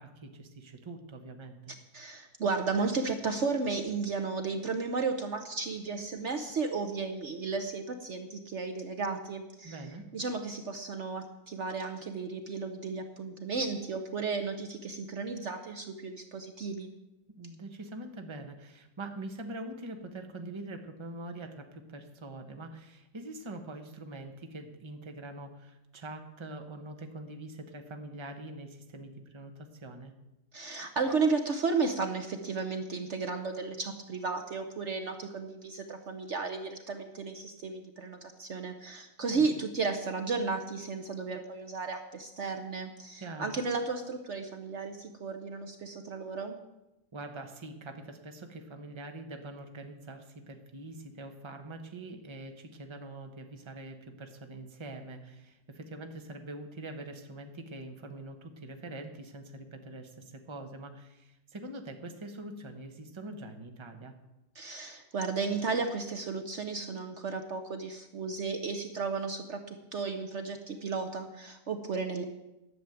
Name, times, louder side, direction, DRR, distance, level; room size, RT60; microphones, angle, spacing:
voice 1, 0.0-1.7 9.6-10.1 17.4-30.1 39.2-39.5 43.2-43.6 47.1-64.1, right 2 dB, 20° right, 5 dB, 1.1 m, -44 dB
voice 2, 1.9-9.8 10.1-16.9 30.5-46.6 64.5-72.3, right 4 dB, 55° right, 6 dB, 1.1 m, -34 dB
11.0 x 7.2 x 9.2 m, 0.96 s
omnidirectional pair, 1.6 m